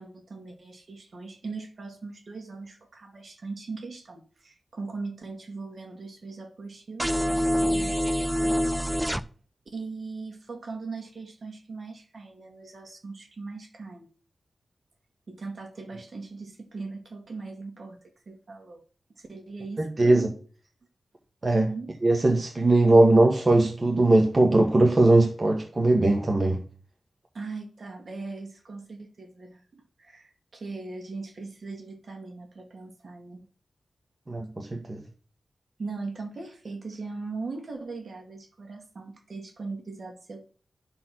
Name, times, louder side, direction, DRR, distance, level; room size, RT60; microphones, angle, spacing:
voice 1, 0.0-8.7 9.7-14.1 15.3-18.0 18.3-18.8 19.2-20.5 21.5-22.4 23.0-23.1 27.3-33.5 35.8-40.5, right 3 dB, 60° right, 2.1 m, -39 dB
sound 1, 7.0-9.2, equal, 5° right, 0.5 m, -25 dB
voice 2, 19.8-20.3 21.4-21.7 22.0-26.6 34.3-35.0, right 2 dB, 35° right, 1.3 m, -20 dB
11.5 x 4.4 x 6.0 m
wide cardioid pair, 105°, 0 cm